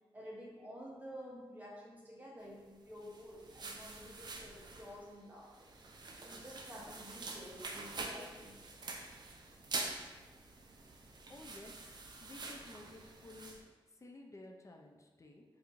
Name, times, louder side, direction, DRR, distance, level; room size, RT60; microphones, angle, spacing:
voice 1, 0.1-5.7 6.2-8.5, equal, 15° right, -5 dB, 0.9 m, -51 dB
sound 1, 2.9-13.6, right 3 dB, 50° right, 0.4 m, -46 dB
voice 2, 11.3-11.7 12.2-13.6 13.9-15.4, left 2 dB, 35° left, 2 dB, 0.4 m, -54 dB
4.4 x 2.6 x 2.5 m, 1.3 s
wide cardioid pair, 90°, 9 cm